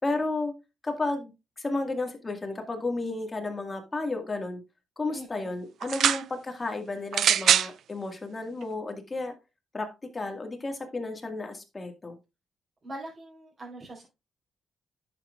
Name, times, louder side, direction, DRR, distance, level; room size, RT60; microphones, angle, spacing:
voice 1, 0.0-0.5 0.8-4.6 5.0-9.3 9.7-9.9 10.1-12.2, left 2 dB, 25° left, 4 dB, 1.9 m, -32 dB
voice 2, 5.1-5.5 12.8-14.0, right 1 dB, 30° right, -4 dB, 4.6 m, -42 dB
sound 1, 5.8-6.2 7.1-7.7 8.6-8.7, right 9 dB, 70° right, 0.4 m, -22 dB
10.5 x 7.2 x 2.4 m, 0.26 s
cardioid pair, 105°, 0 cm